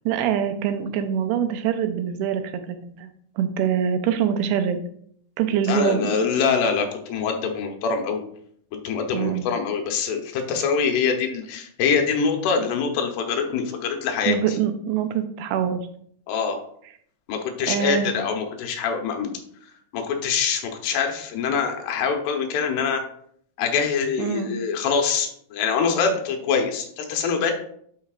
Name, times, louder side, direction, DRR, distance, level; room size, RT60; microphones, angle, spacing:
voice 1, 0.1-3.1 3.4-4.8 5.4-6.2 9.1-9.5 14.3-15.8 17.7-18.1 24.2-24.6, right 8 dB, 80° right, 9 dB, 2.6 m, -24 dB
voice 2, 5.6-8.2 8.8-14.4 16.3-16.6 17.3-19.3 19.9-23.0 23.6-27.5, left 6 dB, 80° left, 3 dB, 3.0 m, -24 dB
11.0 x 4.9 x 2.4 m, 0.65 s
omnidirectional pair, 4.7 m